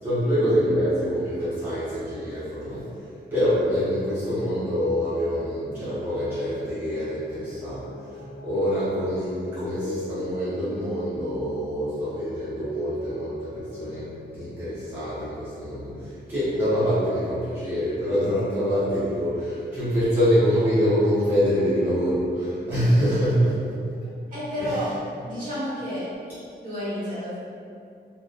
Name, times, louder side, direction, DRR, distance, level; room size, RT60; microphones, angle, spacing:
voice 1, 0.0-3.0 3.3-8.2 8.4-24.1 24.6-24.8, equal, 10° right, -14 dB, 0.7 m, -25 dB
sound 1, 5.6-14.3, equal, 75° left, 0.7 m, -39 dB
voice 2, 24.3-24.9 25.2-26.1 26.6-27.4, equal, 45° right, -11 dB, 1.2 m, -30 dB
2.8 x 2.1 x 2.3 m, 2.4 s
wide cardioid pair, 125°, 18 cm